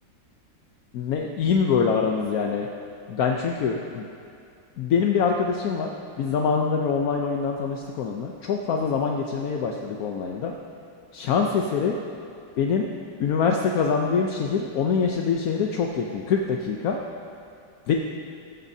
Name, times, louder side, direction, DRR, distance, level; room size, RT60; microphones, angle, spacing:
voice 1, 0.9-2.7 3.1-4.1 4.8-5.9 6.2-10.5 11.1-12.0 12.6-12.9 13.2-17.0 17.9-18.0, left 6 dB, 65° left, 1 dB, 1.0 m, -24 dB
18.5 x 14.5 x 2.7 m, 2.5 s
omnidirectional pair, 2.1 m